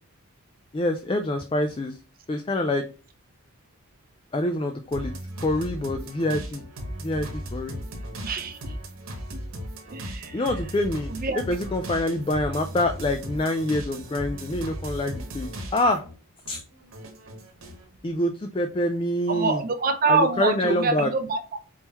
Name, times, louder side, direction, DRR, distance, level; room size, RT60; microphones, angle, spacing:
voice 1, 0.7-2.0 2.3-2.8 4.3-5.1 5.4-6.6 7.0-7.8 10.3-16.0 16.5-16.6 18.0-19.6 20.1-21.1, left 1 dB, 25° left, 6 dB, 0.3 m, -26 dB
sound 1, 4.9-16.1 16.4-17.8, equal, 65° right, 1.1 m, -36 dB
voice 2, 8.2-8.7 9.9-10.4 11.1-11.4 19.3-21.4, right 4 dB, 40° right, 9 dB, 0.5 m, -25 dB
4.4 x 3.6 x 2.8 m, 0.34 s
head